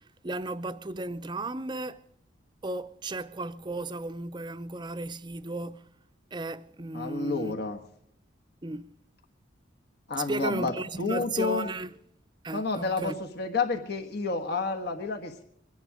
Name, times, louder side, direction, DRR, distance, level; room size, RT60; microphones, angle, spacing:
voice 1, 0.2-2.0 2.6-5.9 6.3-7.6 8.6-8.9 10.3-11.9 12.4-13.1, right 2 dB, 25° right, 0.6 m, -35 dB
voice 2, 6.9-7.8 10.1-11.7 12.5-15.4, left 4 dB, 55° left, 1.5 m, -30 dB
23.0 x 10.5 x 5.0 m
head